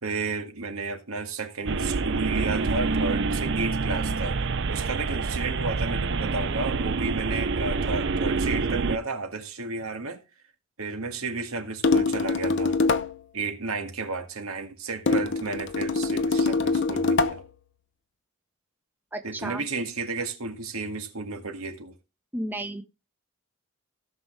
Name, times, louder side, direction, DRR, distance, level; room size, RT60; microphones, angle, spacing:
voice 1, 0.0-4.4 4.7-10.2 10.8-12.8 13.3-17.4 19.2-22.0, right 3 dB, 75° right, 1.9 m, -32 dB
sound 1, 1.7-9.0, right 4 dB, 55° right, 0.6 m, -27 dB
sound 2, 11.8-13.2 15.1-17.5, left 3 dB, 50° left, 0.8 m, -24 dB
voice 2, 19.1-19.6 22.3-22.8, right 1 dB, 10° right, 1.1 m, -32 dB
17.0 x 6.2 x 3.4 m
head